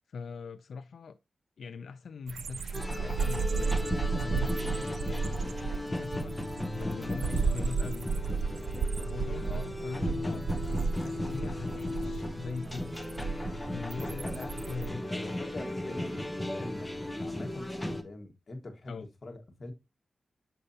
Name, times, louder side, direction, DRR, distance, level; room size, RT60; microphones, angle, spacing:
voice 1, 0.1-1.2 1.6-3.8 4.1-6.4 6.7-8.1 9.0-13.0 13.6-15.0 18.9-19.1, left 5 dB, 90° left, 0.3 m, -41 dB
sound 1, 2.3-14.9, right 5 dB, 80° right, 0.3 m, -34 dB
sound 2, 2.7-18.0, left 1 dB, 10° left, 0.8 m, -36 dB
voice 2, 9.4-10.2 14.0-14.5 15.1-19.7, left 2 dB, 45° left, 1.5 m, -44 dB
6.6 x 5.6 x 2.7 m
wide cardioid pair, 120°, 0 cm